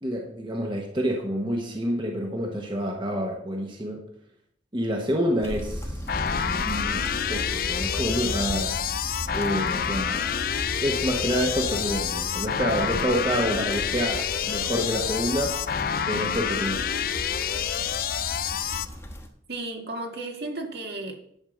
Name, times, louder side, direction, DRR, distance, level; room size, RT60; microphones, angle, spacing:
voice 1, 0.0-4.1 4.7-8.8 9.3-10.4 10.8-15.6 16.1-16.9, equal, 25° right, 1.1 m, -28 dB
sound 1, 5.4-19.3, equal, 15° left, 1.2 m, -36 dB
sound 2, 6.1-18.9, left 8 dB, 50° left, 0.4 m, -28 dB
voice 2, 19.5-21.2, right 2 dB, 60° right, 1.9 m, -34 dB
11.0 x 5.3 x 6.4 m
head